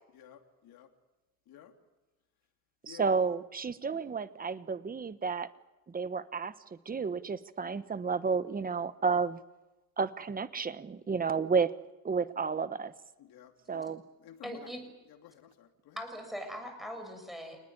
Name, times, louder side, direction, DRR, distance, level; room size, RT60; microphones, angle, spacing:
voice 1, 0.1-0.9 1.5-1.7 2.8-3.2 13.2-13.9 14.2-14.7 15.1-16.0, left 10 dB, 75° left, 3 dB, 3.2 m, -53 dB
voice 2, 2.8-5.5 5.9-6.5 6.8-9.4 10.0-11.7 12.0-12.9 13.7-14.0, right 5 dB, 25° right, 13 dB, 1.2 m, -31 dB
voice 3, 14.4-14.8 16.0-17.6, equal, ahead, 5 dB, 6.9 m, -40 dB
28.5 x 20.0 x 9.8 m, 1.1 s
cardioid pair, 135°, 37 cm